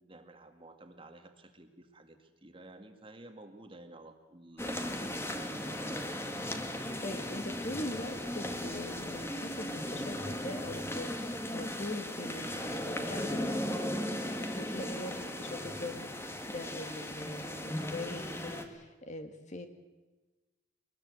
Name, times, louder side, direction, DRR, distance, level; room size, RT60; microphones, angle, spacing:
voice 1, 0.0-6.1, right 2 dB, 30° right, 7 dB, 2.0 m, -53 dB
sound 1, 4.6-18.6, left 1 dB, 15° left, 1.8 m, -37 dB
voice 2, 7.0-13.6 14.3-19.7, left 1 dB, 40° left, 7 dB, 1.9 m, -42 dB
22.5 x 20.5 x 8.0 m, 1.2 s
head